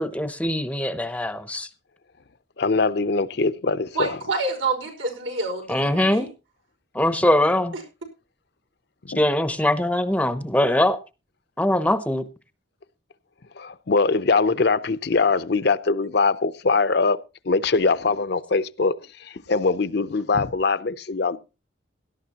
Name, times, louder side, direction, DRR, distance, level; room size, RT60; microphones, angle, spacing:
voice 1, 0.0-1.7 5.7-6.3 6.9-7.8 9.2-11.0 11.6-12.3, left 1 dB, 5° left, 0.7 m, -22 dB
voice 2, 2.6-4.2 9.1-9.2 13.6-17.2 17.5-18.9 19.2-21.4, left 4 dB, 55° left, 0.6 m, -22 dB
voice 3, 4.0-6.3, right 3 dB, 85° right, 5.1 m, -27 dB
17.5 x 12.5 x 2.9 m
head